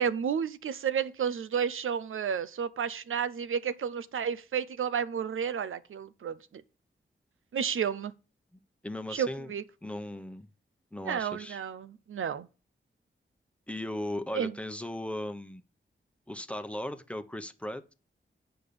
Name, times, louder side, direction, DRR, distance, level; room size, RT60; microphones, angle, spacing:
voice 1, 0.0-6.6 7.5-8.1 9.1-9.6 11.0-12.5 14.3-14.5, right 7 dB, 90° right, 0.6 m, -31 dB
voice 2, 8.8-9.5 9.8-10.5 10.9-11.6 13.7-15.6 16.3-17.9, left 1 dB, 5° left, 0.9 m, -37 dB
8.6 x 5.4 x 6.9 m
wide cardioid pair, 85°, 20 cm